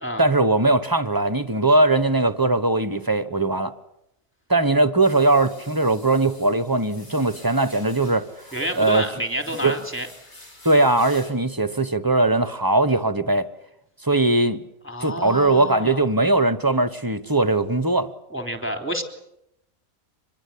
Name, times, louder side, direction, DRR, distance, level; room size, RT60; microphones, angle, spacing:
voice 1, 0.2-3.7 4.5-8.3 8.7-9.0 9.6-9.8 10.6-13.5 14.0-14.6 15.0-18.1, right 2 dB, 15° right, 1.0 m, -20 dB
sound 1, 5.0-11.3, left 1 dB, 55° left, 5.9 m, -47 dB
voice 2, 8.5-10.1 14.8-16.0 18.3-19.0, equal, 10° left, 3.5 m, -29 dB
26.0 x 21.5 x 8.6 m
omnidirectional pair, 1.4 m